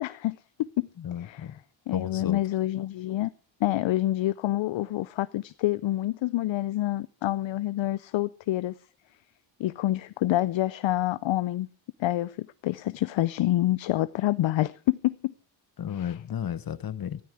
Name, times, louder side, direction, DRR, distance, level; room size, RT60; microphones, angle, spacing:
voice 1, 0.0-0.9 1.2-1.5 1.9-3.3 3.6-8.7 9.6-11.7 12.0-15.3 15.9-16.1, left 15 dB, 75° left, 0.6 m, -27 dB
voice 2, 1.0-1.5 1.9-2.4 15.8-17.2, left 9 dB, 50° left, 0.9 m, -33 dB
15.0 x 13.0 x 4.8 m
cardioid pair, 100°, 46 cm